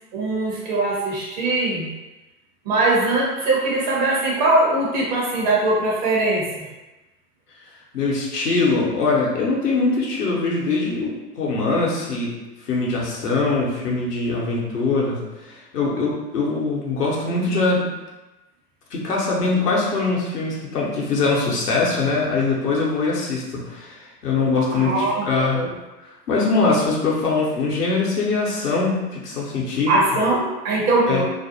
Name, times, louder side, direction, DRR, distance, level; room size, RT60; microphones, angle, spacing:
voice 1, 0.1-1.9 2.7-6.6 24.7-25.2 25.5-25.7 29.9-31.3, right 2 dB, 30° right, -4 dB, 0.5 m, -21 dB
voice 2, 7.9-12.3 12.7-17.9 18.9-25.6 26.3-30.0 31.1-31.3, left 3 dB, 70° left, -4 dB, 0.9 m, -22 dB
2.5 x 2.0 x 2.6 m, 1.1 s
figure-of-eight pair, 95°, 49 cm